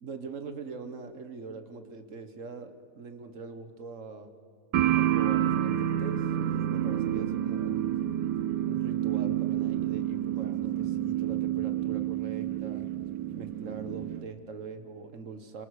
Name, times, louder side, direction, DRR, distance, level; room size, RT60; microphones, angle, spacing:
voice 1, 0.0-4.3 4.9-8.0 8.6-12.9 13.3-15.7, right 4 dB, 50° right, 8 dB, 1.7 m, -42 dB
sound 1, 4.7-14.2, right 11 dB, 90° right, 1.4 m, -29 dB
29.5 x 26.0 x 6.6 m, 2.4 s
omnidirectional pair, 1.7 m